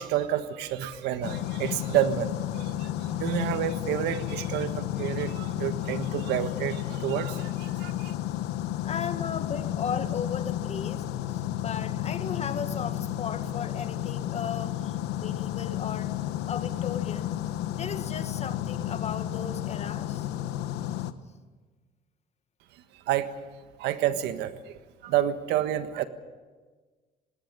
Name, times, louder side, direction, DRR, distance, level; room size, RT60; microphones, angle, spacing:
voice 1, 0.0-8.1 23.1-23.3 23.8-24.7 25.0-26.1, right 11 dB, 90° right, 11 dB, 1.5 m, -29 dB
sound 1, 1.2-21.1, left 12 dB, 85° left, 1.1 m, -32 dB
voice 2, 8.8-11.0 11.3-16.1 16.5-17.3 17.7-20.3, left 7 dB, 40° left, 9 dB, 1.9 m, -36 dB
19.5 x 18.0 x 9.1 m, 1.4 s
cardioid pair, 110°, 17 cm